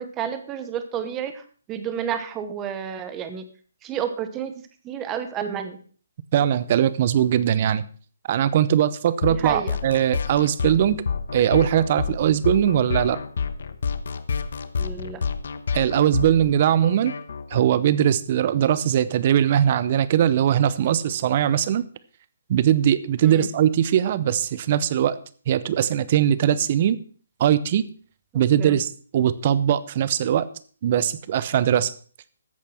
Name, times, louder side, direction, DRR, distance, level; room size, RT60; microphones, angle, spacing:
voice 1, 0.0-1.4 1.7-3.4 3.8-4.5 4.8-5.8 9.4-9.8 14.8-15.2 23.2-23.5 28.3-28.8, right 8 dB, 10° right, 9 dB, 1.0 m, -30 dB
voice 2, 6.3-7.9 8.3-11.0 11.3-13.2 15.7-17.1 17.5-21.8 22.5-25.2 25.5-27.0 27.4-27.9 28.3-30.5 30.8-31.9, right 10 dB, 30° right, 17 dB, 0.7 m, -20 dB
sound 1, 9.2-17.6, left 5 dB, 55° left, 1.1 m, -29 dB
14.0 x 8.3 x 5.7 m, 0.42 s
hypercardioid pair, 175°, 0 cm